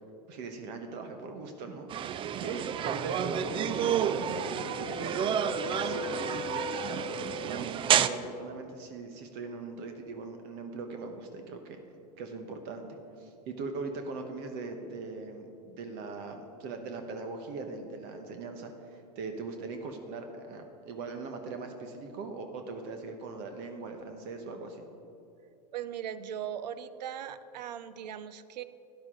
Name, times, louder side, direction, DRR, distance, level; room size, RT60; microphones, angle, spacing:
voice 1, 0.3-11.8 12.2-12.9 13.2-24.9, right 3 dB, 55° right, 5 dB, 1.1 m, -40 dB
sound 1, 1.9-8.1, right 9 dB, 25° right, 0.3 m, -30 dB
Wind instrument woodwind instrument, 3.8-7.9, left 5 dB, 50° left, 0.8 m, -40 dB
voice 2, 25.7-28.6, right 9 dB, 85° right, 14 dB, 0.6 m, -39 dB
12.0 x 10.5 x 3.8 m, 2.7 s
hypercardioid pair, 105°, 21 cm